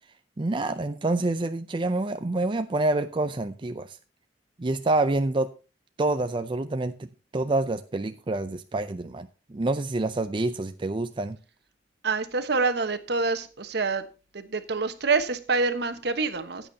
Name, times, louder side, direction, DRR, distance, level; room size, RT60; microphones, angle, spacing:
voice 1, 0.4-4.0 4.6-5.5 6.0-11.4, right 2 dB, 30° right, 0.5 m, -27 dB
voice 2, 12.0-14.0 14.3-16.7, right 4 dB, 65° right, 1.2 m, -26 dB
16.0 x 9.0 x 2.8 m
head